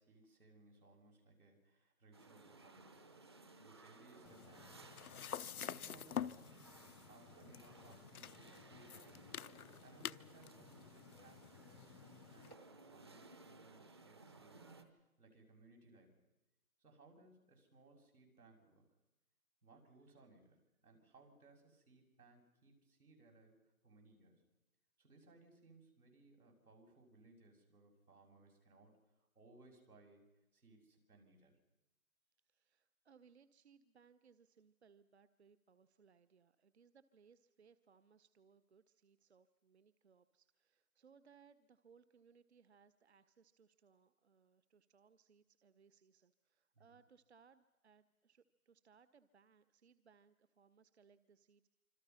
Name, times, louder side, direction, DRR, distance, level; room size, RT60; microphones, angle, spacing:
voice 1, 0.0-3.1 3.6-4.9 5.6-6.4 7.1-9.3 9.8-14.7 15.2-16.2 16.8-18.8 19.6-20.6 20.8-23.6 23.8-24.4 25.0-30.2 30.5-31.6 46.8-46.9, right 2 dB, 85° right, 1 dB, 7.3 m, -65 dB
sound 1, 2.1-14.8, right 3 dB, 20° right, 0.8 m, -60 dB
sound 2, 4.3-12.5, left 9 dB, 80° left, 0.8 m, -48 dB
voice 2, 32.4-51.7, right 6 dB, 50° right, 13 dB, 0.9 m, -68 dB
26.0 x 26.0 x 5.7 m, 0.96 s
hypercardioid pair, 170°, 43 cm